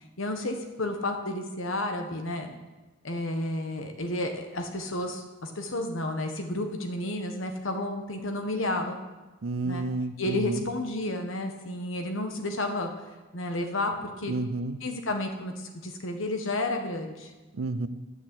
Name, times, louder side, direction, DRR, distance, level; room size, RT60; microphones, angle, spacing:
voice 1, 0.2-2.5 3.0-9.0 9.6-9.8 10.2-12.9 13.3-14.3 14.8-17.3, left 1 dB, 65° left, 5 dB, 1.3 m, -31 dB
voice 2, 9.4-10.6 14.3-14.8 17.5-17.9, right 2 dB, 75° right, 12 dB, 0.6 m, -30 dB
10.5 x 6.4 x 7.7 m, 1.2 s
head